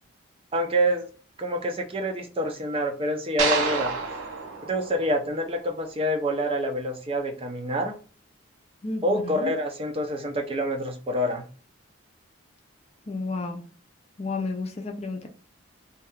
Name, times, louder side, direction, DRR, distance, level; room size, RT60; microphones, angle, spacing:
voice 1, 0.5-1.1 1.4-3.9 4.6-8.0 9.0-11.4, equal, 25° right, 0.5 m, -27 dB
sound 1, 3.4-5.7, right 4 dB, 80° right, 0.7 m, -29 dB
voice 2, 8.8-9.5 13.1-13.6 14.2-15.3, left 3 dB, 30° left, 0.4 m, -32 dB
2.7 x 2.3 x 3.3 m
head